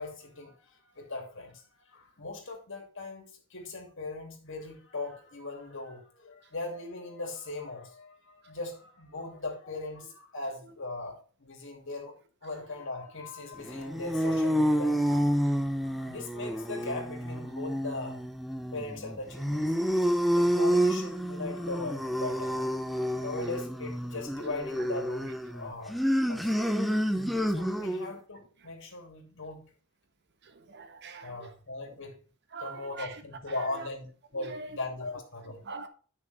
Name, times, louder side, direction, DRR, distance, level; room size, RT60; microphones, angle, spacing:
voice 1, 0.0-12.2 12.4-15.4 15.7-18.2 18.7-19.7 20.3-25.9 26.3-26.7 27.5-29.7 31.2-32.2 32.6-35.6, left 2 dB, 65° left, 2.6 m, -39 dB
sound 1, 13.6-28.1, equal, ahead, 0.8 m, -29 dB
voice 2, 30.7-31.3 32.5-33.1 34.5-34.6 35.7-35.9, right 4 dB, 55° right, 1.3 m, -42 dB
10.0 x 6.1 x 4.1 m
head